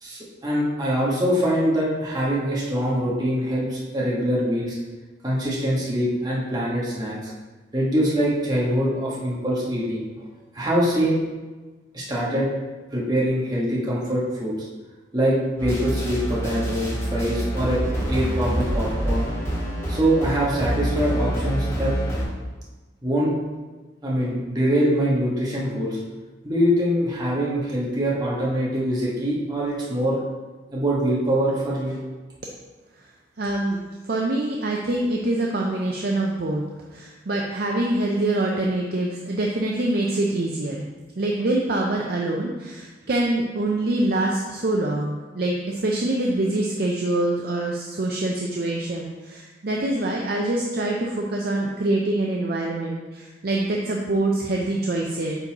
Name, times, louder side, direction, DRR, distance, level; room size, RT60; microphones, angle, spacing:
voice 1, 0.0-4.8 5.2-7.3 7.7-10.3 10.5-11.2 11.9-12.5 12.9-14.7 15.1-17.8 18.1-19.3 19.9-21.9 23.0-23.3 24.0-26.0 26.4-30.2 30.7-32.0, equal, 20° right, -6 dB, 1.4 m, -23 dB
sound 1, 15.6-22.2, right 1 dB, 15° left, 1.7 m, -26 dB
voice 2, 33.4-36.6 36.9-40.9 41.2-55.4, right 2 dB, 55° right, -1 dB, 0.6 m, -25 dB
9.0 x 4.0 x 2.9 m, 1.2 s
head